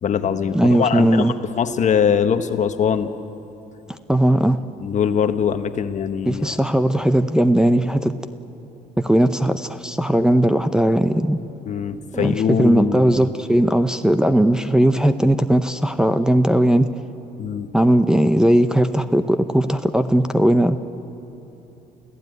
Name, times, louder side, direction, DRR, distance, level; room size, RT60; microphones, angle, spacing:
voice 1, 0.0-3.1 4.8-6.5 11.7-13.3 17.4-17.7, left 7 dB, 45° left, 9 dB, 1.2 m, -22 dB
voice 2, 0.5-1.3 4.1-4.6 6.3-8.2 9.0-11.4 12.1-16.9 17.7-20.8, right 1 dB, 5° right, 7 dB, 0.7 m, -18 dB
28.5 x 15.5 x 9.4 m, 2.9 s
cardioid pair, 110°, 17 cm